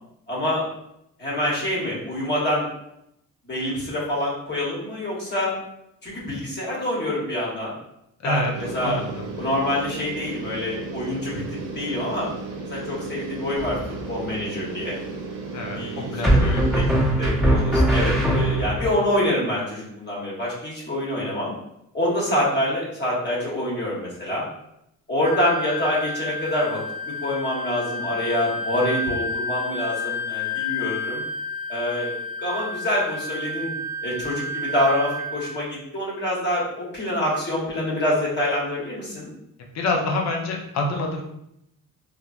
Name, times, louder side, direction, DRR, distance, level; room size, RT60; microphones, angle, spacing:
voice 1, 0.3-0.6 1.2-2.7 3.5-5.5 6.0-7.7 8.2-9.0 9.4-12.3 12.7-13.8 14.1-15.0 15.7-21.5 21.9-24.4 25.1-31.2 31.7-32.1 32.4-33.7 34.0-39.3, left 1 dB, 30° left, -5 dB, 1.0 m, -26 dB
sound 1, 8.5-17.3, right 3 dB, 70° right, 0.7 m, -35 dB
sound 2, 13.6-14.1 16.2-18.9, right 1 dB, ahead, 0.9 m, -20 dB
voice 2, 15.5-16.6 39.7-41.2, left 2 dB, 50° left, 1 dB, 0.6 m, -26 dB
Wind instrument woodwind instrument, 25.2-35.6, left 2 dB, 15° right, 0.3 m, -30 dB
3.1 x 2.1 x 2.4 m, 0.80 s
cardioid pair, 110°, 34 cm